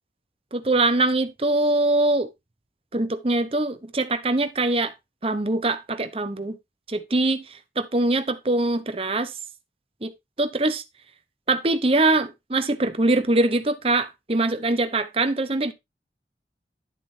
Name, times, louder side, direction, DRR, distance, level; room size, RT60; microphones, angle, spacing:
voice 1, 0.5-2.3 2.9-4.9 5.2-6.6 6.9-7.4 7.8-9.3 10.0-10.1 10.4-10.8 11.5-15.7, right 2 dB, 35° right, 0.8 m, -23 dB
11.0 x 7.5 x 2.7 m
head